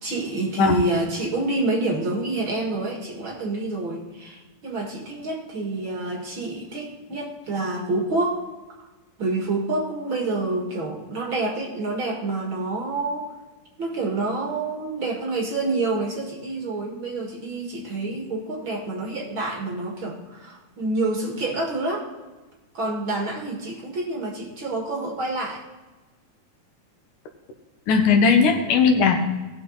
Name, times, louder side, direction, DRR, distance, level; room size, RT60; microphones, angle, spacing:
voice 1, 0.0-8.4 9.2-13.3 13.8-22.1 22.7-25.6, right 2 dB, 45° right, -1 dB, 2.2 m, -27 dB
voice 2, 27.9-29.2, left 5 dB, 75° left, 4 dB, 2.8 m, -17 dB
18.5 x 6.8 x 4.0 m, 1.2 s
omnidirectional pair, 3.7 m